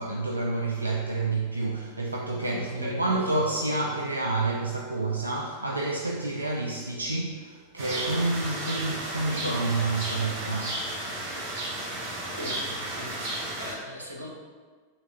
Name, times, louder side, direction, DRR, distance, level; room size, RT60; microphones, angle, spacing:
voice 1, 0.0-10.9, right 2 dB, 80° right, -1 dB, 0.3 m, -29 dB
voice 2, 2.3-3.2 12.4-12.6 12.9-14.3, left 2 dB, 80° left, -1 dB, 0.7 m, -39 dB
sound 1, 7.8-13.7, right 1 dB, 55° right, 1.3 m, -33 dB
5.6 x 3.5 x 2.5 m, 1.5 s
figure-of-eight pair, 90°, 0 cm